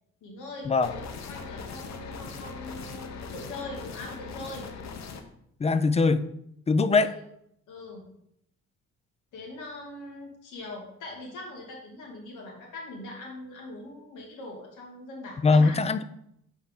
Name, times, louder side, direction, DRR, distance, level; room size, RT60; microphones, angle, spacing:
voice 1, 0.2-4.7 7.0-7.2 7.7-8.1 9.3-15.8, left 2 dB, 85° left, -1 dB, 2.1 m, -42 dB
sound 1, 0.8-5.2, left 5 dB, 65° left, 0.9 m, -40 dB
voice 2, 5.6-6.2 6.7-7.1 15.4-16.0, left 4 dB, 20° left, 13 dB, 0.4 m, -21 dB
8.0 x 4.2 x 3.7 m, 0.74 s
cardioid pair, 90°, 30 cm